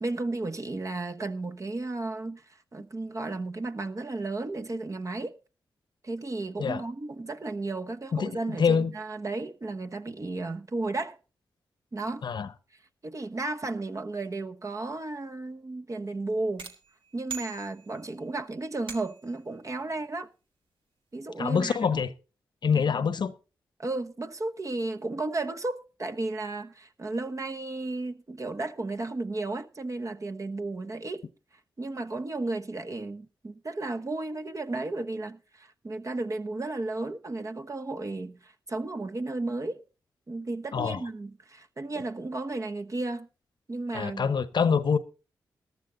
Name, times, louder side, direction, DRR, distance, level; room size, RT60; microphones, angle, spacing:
voice 1, 0.0-5.3 6.0-11.2 11.9-12.2 13.0-16.7 17.1-20.3 21.1-22.0 22.7-23.1 23.8-31.2 31.8-39.8 40.3-43.3 43.7-44.3, right 2 dB, 40° right, 1.1 m, -34 dB
voice 2, 8.6-8.9 12.2-12.5 21.4-22.1 22.6-23.3 40.7-41.0 43.9-45.0, left 6 dB, 65° left, 0.9 m, -25 dB
sound 1, 16.6-18.2 18.9-19.4, right 7 dB, 85° right, 1.6 m, -42 dB
14.0 x 11.5 x 3.9 m
supercardioid pair, 45°, 8 cm